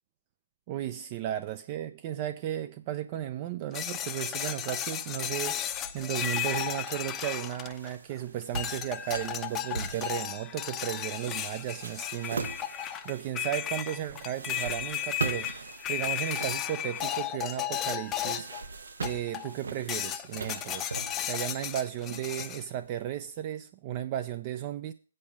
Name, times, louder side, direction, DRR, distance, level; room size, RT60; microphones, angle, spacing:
voice 1, 0.7-18.5 19.0-20.9 21.2-24.9, right 12 dB, 35° right, 0.5 m, -35 dB
sound 1, 3.7-8.1 8.6-18.6 19.0-19.5 19.9-22.6, left 11 dB, 20° left, 0.6 m, -34 dB
sound 2, 5.7-23.2, right 4 dB, 75° right, 0.9 m, -42 dB
8.8 x 4.9 x 7.1 m
hypercardioid pair, 140°, 0 cm